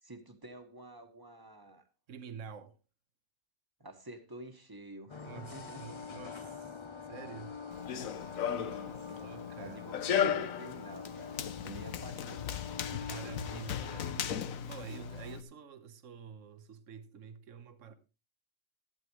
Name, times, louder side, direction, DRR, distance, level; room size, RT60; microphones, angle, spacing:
voice 1, 0.0-1.9 3.8-5.8 8.5-9.3 9.5-12.6, right 1 dB, 15° right, 1.5 m, -49 dB
voice 2, 2.1-2.8 5.2-6.8 7.1-7.6 8.5-8.7 9.2-9.8 12.8-14.3 14.6-17.9, right 6 dB, 70° right, 1.4 m, -48 dB
sound 1, 5.1-15.4, left 5 dB, 30° left, 0.5 m, -45 dB
Run, 7.7-15.4, left 8 dB, 80° left, 1.2 m, -36 dB
14.0 x 12.0 x 3.2 m
omnidirectional pair, 1.4 m